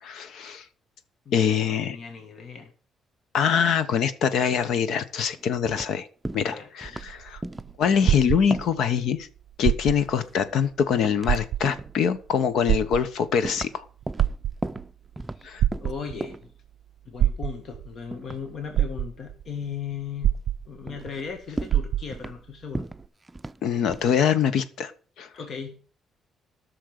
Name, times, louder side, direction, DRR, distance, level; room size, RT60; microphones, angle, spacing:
voice 1, 0.0-0.6 1.3-2.0 3.3-6.1 6.3-7.4 7.8-9.3 9.6-13.9 15.4-15.6 23.6-24.9 25.2-25.3, left 7 dB, 75° left, 13 dB, 1.1 m, -24 dB
voice 2, 1.2-2.7 6.4-6.7 15.3-16.3 17.0-20.4 20.6-22.9 25.3-25.8, left 6 dB, 55° left, 5 dB, 1.7 m, -37 dB
sound 1, 5.4-5.9 6.3-6.6 6.8-7.1 7.4-7.8 8.0-8.8 10.0-10.7 11.0-11.4 11.6-12.0 12.7-12.8 13.4-13.8 14.1-15.5 15.7-16.5 18.1-18.9 20.3-20.4 20.9-21.2 21.5-22.4 22.8-23.6 23.9-24.1, right 2 dB, 15° right, 0.5 m, -36 dB
sound 2, 6.9-8.9 9.5-10.2 10.6-10.7 11.2-11.9 12.7-13.5 14.0-14.9 15.6-16.3 17.2-17.9 18.4-18.5 18.7-19.5 20.2-21.0 21.3-21.4 21.7-22.3 23.0-23.1, right 11 dB, 75° right, 0.4 m, -25 dB
13.0 x 6.5 x 6.6 m, 0.42 s
cardioid pair, 90°, 0 cm